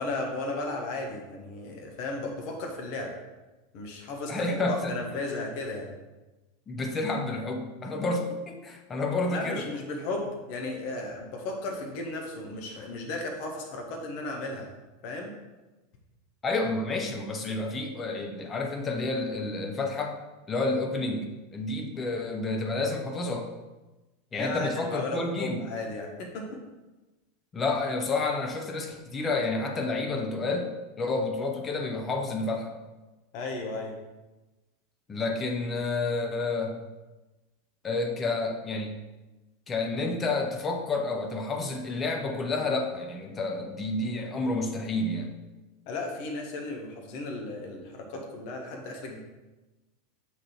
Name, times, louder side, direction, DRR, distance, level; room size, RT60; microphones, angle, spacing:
voice 1, 0.0-3.2 3.7-5.9 9.3-14.7 15.0-15.3 24.4-26.6 33.3-33.9 45.9-49.2, left 2 dB, 50° left, 2 dB, 1.1 m, -35 dB
voice 2, 4.3-5.0 6.7-9.7 16.4-20.2 20.5-23.5 24.3-25.7 27.5-32.8 35.1-36.8 37.8-38.9 39.7-45.3, left 3 dB, 25° left, 3 dB, 0.8 m, -30 dB
6.2 x 3.8 x 4.3 m, 1.1 s
figure-of-eight pair, 85°, 0 cm